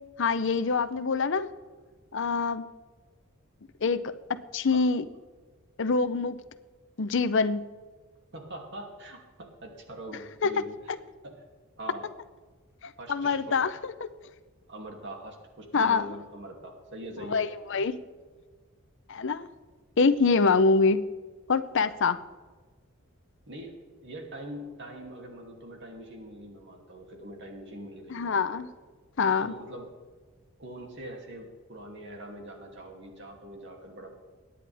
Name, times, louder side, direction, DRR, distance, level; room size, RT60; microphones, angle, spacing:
voice 1, 0.2-1.5 2.1-2.7 3.8-5.0 5.8-6.4 7.0-7.6 10.4-10.5 13.1-14.1 15.7-16.1 17.3-18.0 19.1-19.5 20.0-21.0 21.5-22.2 28.1-28.7 29.2-29.5, left 4 dB, 60° left, 13 dB, 0.7 m, -25 dB
voice 2, 8.3-10.8 11.2-11.5 11.8-12.1 13.0-13.6 14.7-17.8 23.5-28.7 29.3-29.9 30.6-34.1, right 1 dB, 60° right, 1 dB, 2.7 m, -43 dB
23.0 x 10.0 x 3.5 m, 1.4 s
head